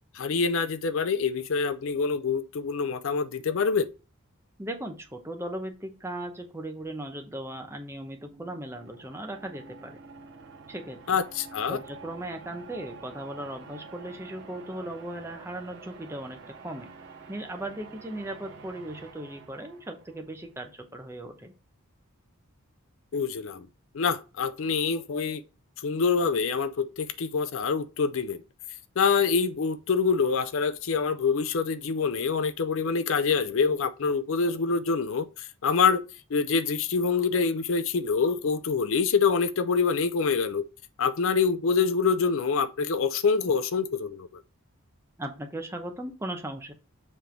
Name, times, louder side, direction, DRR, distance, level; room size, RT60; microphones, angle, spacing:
voice 1, 0.1-3.9 11.1-11.8 23.1-23.7 23.9-25.4 25.8-28.4 29.0-36.0 36.3-40.6 41.0-44.4, left 5 dB, 60° left, 0.4 m, -26 dB
voice 2, 4.6-10.0 10.7-11.2 11.7-16.9 17.3-21.5 45.2-46.7, right 1 dB, 10° right, 0.8 m, -37 dB
sound 1, 7.2-20.3, right 4 dB, 55° right, 1.1 m, -48 dB
7.2 x 3.3 x 4.4 m
head